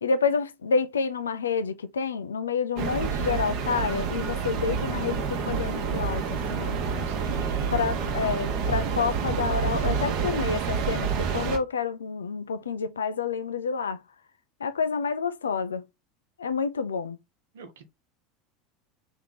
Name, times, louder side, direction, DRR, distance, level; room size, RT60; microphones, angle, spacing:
voice 1, 0.0-6.8 7.7-14.0 14.6-15.8 16.4-17.2, left 5 dB, 85° left, 0.4 m, -28 dB
sound 1, 2.8-11.6, right 6 dB, 60° right, 1.0 m, -28 dB
Bowed string instrument, 5.0-9.2, left 9 dB, 35° left, 0.8 m, -42 dB
voice 2, 6.5-8.0 17.5-17.9, right 4 dB, 75° right, 1.0 m, -44 dB
3.5 x 3.0 x 4.0 m
hypercardioid pair, 80°, 0 cm